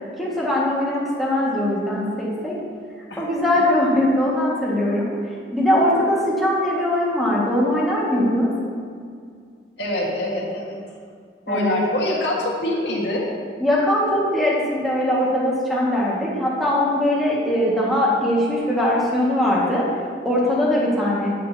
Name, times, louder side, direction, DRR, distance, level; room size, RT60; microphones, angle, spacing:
voice 1, 0.2-2.5 3.2-5.1 5.5-8.5 11.5-11.8 13.6-19.9 20.2-21.3, left 1 dB, ahead, -7 dB, 1.9 m, -21 dB
voice 2, 9.8-10.8 11.5-13.2, left 1 dB, 85° left, -4 dB, 1.8 m, -24 dB
9.3 x 9.2 x 2.9 m, 2.2 s
head